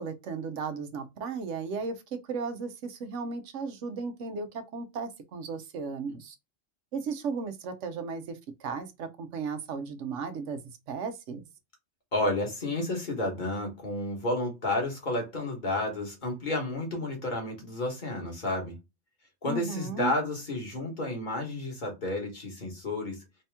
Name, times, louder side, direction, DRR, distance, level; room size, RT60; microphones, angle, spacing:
voice 1, 0.0-6.3 6.9-10.6 10.9-11.4 19.5-20.1, right 5 dB, 90° right, 1.1 m, -35 dB
voice 2, 12.1-18.8 19.4-23.2, left 2 dB, 40° left, 1.5 m, -31 dB
3.4 x 2.8 x 3.4 m
omnidirectional pair, 1.2 m